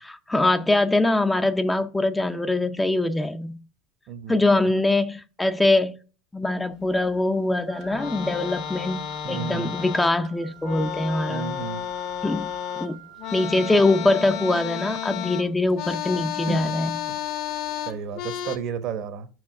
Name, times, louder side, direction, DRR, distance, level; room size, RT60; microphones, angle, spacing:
voice 1, 0.0-3.6 4.3-5.9 6.3-9.0 9.3-11.6 12.2-12.5 12.7-13.0 13.3-17.0, left 2 dB, 10° left, 0.5 m, -23 dB
voice 2, 4.1-4.7 9.2-9.8 11.3-11.9 16.5-16.7 17.1-17.2 17.9-19.3, right 6 dB, 55° right, 1.0 m, -33 dB
Wind instrument woodwind instrument, 7.7-14.1, right 15 dB, 80° right, 0.9 m, -48 dB
sound 1, 7.8-10.3 10.6-18.6, left 10 dB, 60° left, 1.3 m, -32 dB
5.6 x 4.8 x 4.7 m
supercardioid pair, 110°, 0 cm